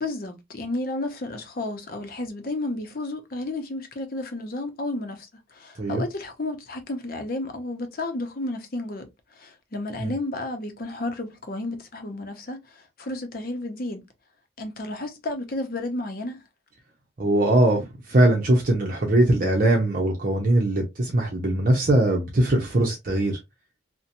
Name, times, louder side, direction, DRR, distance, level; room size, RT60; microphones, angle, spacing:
voice 1, 0.0-14.0 14.6-16.4, left 2 dB, 55° left, 0.6 m, -32 dB
voice 2, 17.2-23.3, right 1 dB, 50° right, 0.7 m, -21 dB
2.8 x 2.1 x 2.6 m
head